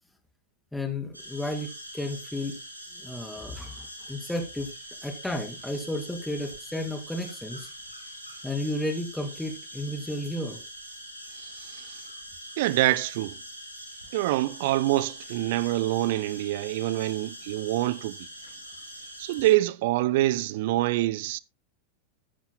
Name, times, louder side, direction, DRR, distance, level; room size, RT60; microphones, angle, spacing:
voice 1, 0.7-2.6 3.0-4.7 5.0-7.7 8.4-10.6, left 1 dB, 5° left, 2.5 m, -33 dB
sound 1, 1.1-19.5, equal, 85° right, 7.4 m, -43 dB
voice 2, 11.4-12.0 12.6-13.4 14.1-18.2 19.2-21.4, right 16 dB, 50° right, 0.6 m, -26 dB
14.0 x 11.5 x 2.2 m
figure-of-eight pair, 90°, 0 cm